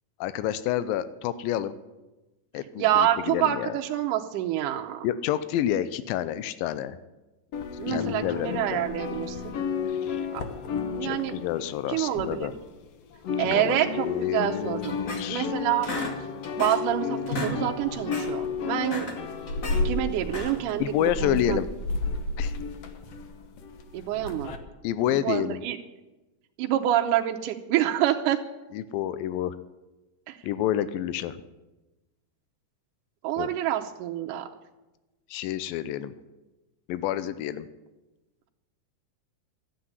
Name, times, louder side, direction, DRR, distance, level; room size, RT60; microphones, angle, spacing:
voice 1, 0.2-1.7 2.5-3.8 5.0-7.0 7.9-8.8 9.9-10.2 11.0-12.5 13.4-15.5 20.8-21.7 22.4-22.6 24.8-25.6 28.7-29.6 30.4-31.4 33.4-33.5 35.3-36.1 36.9-37.7, left 11 dB, 90° left, 14 dB, 2.4 m, -29 dB
voice 2, 2.8-5.1 7.8-9.5 10.3-10.4 10.9-11.4 11.9-12.5 13.4-15.0 15.3-15.9 16.6-19.1 19.8-20.8 21.2-21.6 23.9-24.5 25.1-25.8 26.6-28.4 30.3-30.4 33.2-34.5, right 11 dB, 75° right, 2 dB, 2.2 m, -27 dB
sound 1, 7.5-12.9 13.1-24.6, left 5 dB, 65° left, 1.7 m, -32 dB
sound 2, 14.8-15.5 15.8-16.9 17.2-17.6 17.9-18.3 18.7-19.8 20.2-20.7, left 1 dB, 40° left, 1.2 m, -34 dB
13.0 x 8.5 x 9.5 m, 1.1 s
omnidirectional pair, 4.0 m